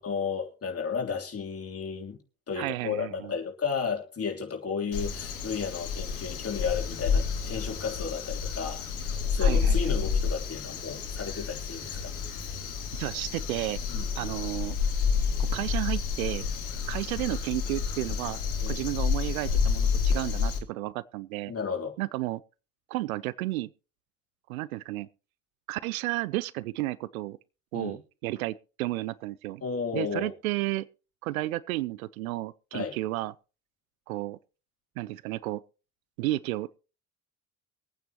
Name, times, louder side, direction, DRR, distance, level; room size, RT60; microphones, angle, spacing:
voice 1, 0.0-2.2 2.5-12.1 13.9-14.3 18.6-18.8 21.5-21.9 27.7-28.0 29.6-30.3 32.7-33.0, left 6 dB, 35° left, 3.3 m, -33 dB
voice 2, 2.6-3.3 9.4-9.8 12.9-13.8 14.2-14.8 15.4-16.5 16.9-18.4 18.7-21.5 22.0-22.4 22.9-23.7 24.5-25.1 25.7-27.4 27.7-29.6 29.9-30.9 31.2-33.3 34.1-34.4 35.0-35.6 36.2-36.8, right 18 dB, 75° right, 0.6 m, -32 dB
Crow, 4.9-20.6, left 6 dB, 75° left, 2.2 m, -29 dB
23.5 x 9.0 x 3.0 m
hypercardioid pair, 60°, 42 cm